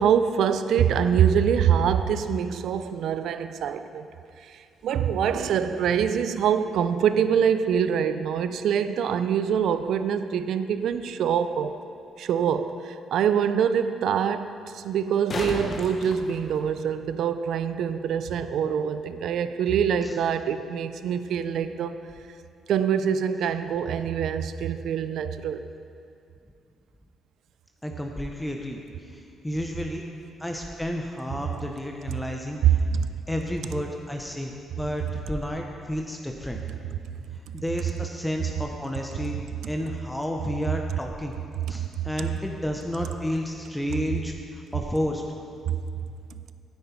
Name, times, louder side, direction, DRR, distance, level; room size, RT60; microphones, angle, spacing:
voice 1, 0.0-4.1 4.4-11.8 12.2-21.9 22.7-25.6 32.9-33.1 41.8-41.9 45.7-45.8, right 8 dB, 75° right, 11 dB, 0.4 m, -25 dB
sound 1, 12.1-12.2 14.9-17.1 19.9-20.0, left 3 dB, 45° left, 1.1 m, -35 dB
voice 2, 27.8-30.0 30.4-32.8 33.3-36.6 37.5-39.4 39.7-41.3 41.7-45.2, left 1 dB, 5° left, 2 dB, 0.8 m, -31 dB
9.6 x 9.3 x 4.4 m, 2.4 s
cardioid pair, 90°, 0 cm